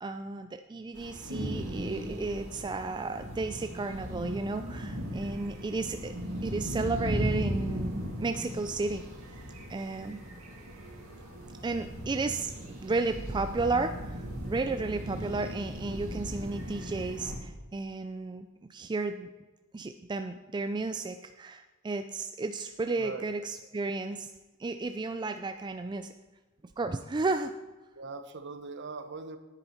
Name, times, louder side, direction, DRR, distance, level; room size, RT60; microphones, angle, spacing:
voice 1, 0.0-6.1 6.4-9.0 9.7-10.2 11.6-19.3 19.7-24.3 24.6-26.1 26.8-27.6, right 3 dB, 20° right, 8 dB, 0.3 m, -33 dB
sound 1, 0.9-17.4, equal, 90° right, 3.2 m, -37 dB
voice 2, 23.0-23.3 27.9-29.4, right 3 dB, 55° right, 9 dB, 0.9 m, -40 dB
9.9 x 9.8 x 4.4 m, 1.2 s
head